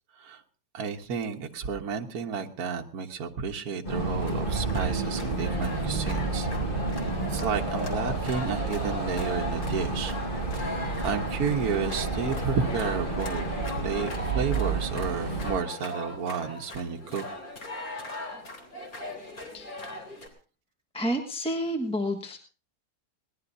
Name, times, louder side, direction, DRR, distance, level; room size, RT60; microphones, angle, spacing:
voice 1, 0.7-6.5 7.3-10.1 11.0-13.5 13.7-17.2, right 6 dB, 65° right, 3 dB, 1.6 m, -31 dB
sound 1, 3.8-15.5, right 3 dB, 30° left, 7.0 m, -30 dB
sound 2, 4.2-20.3, left 1 dB, 60° left, 4.0 m, -39 dB
voice 2, 19.5-19.9 20.9-22.4, equal, 5° left, 3 dB, 1.2 m, -30 dB
22.0 x 18.5 x 2.7 m, 0.38 s
omnidirectional pair, 1.8 m